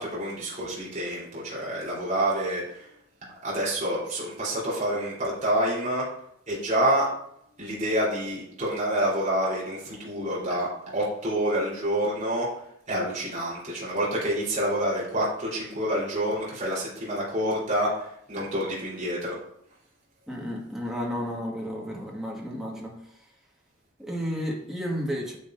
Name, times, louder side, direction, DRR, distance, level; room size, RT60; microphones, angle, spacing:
voice 1, 0.0-2.6 3.4-6.1 6.5-7.1 7.6-12.5 12.9-17.9 18.3-19.3, right 1 dB, 35° right, -7 dB, 3.6 m, -27 dB
voice 2, 20.3-22.9 24.0-25.4, equal, ahead, -3 dB, 1.7 m, -32 dB
9.6 x 7.4 x 2.6 m, 0.73 s
head